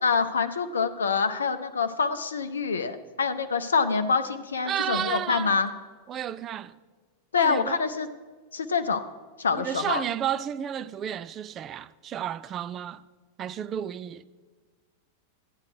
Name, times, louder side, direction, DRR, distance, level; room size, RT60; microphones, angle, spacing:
voice 1, 0.0-5.7 7.3-8.1 8.5-9.0 9.4-10.0, left 5 dB, 70° left, 0.5 m, -26 dB
voice 2, 4.7-5.6 6.1-6.8 7.4-7.8 9.5-13.0 13.4-14.2, right 9 dB, 30° right, 0.4 m, -32 dB
13.0 x 9.4 x 4.8 m
figure-of-eight pair, 90°, 0 cm